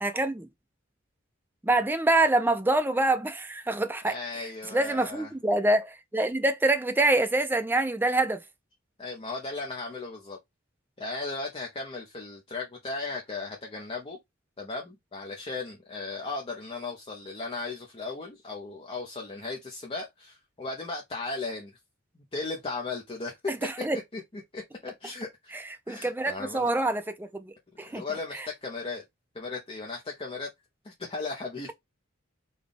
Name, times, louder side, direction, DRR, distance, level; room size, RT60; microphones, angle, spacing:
voice 1, 0.0-0.5 1.6-4.1 4.7-8.4 23.5-24.0 25.5-28.0 28.4-28.5, right 2 dB, 10° right, 0.4 m, -26 dB
voice 2, 4.1-5.3 9.0-10.4 11.0-14.2 14.6-21.8 22.1-23.4 24.1-24.2 24.5-25.5 25.9-26.7 27.9-29.0 29.3-30.5 30.8-31.7, left 3 dB, 25° left, 0.7 m, -36 dB
4.0 x 2.3 x 3.3 m
head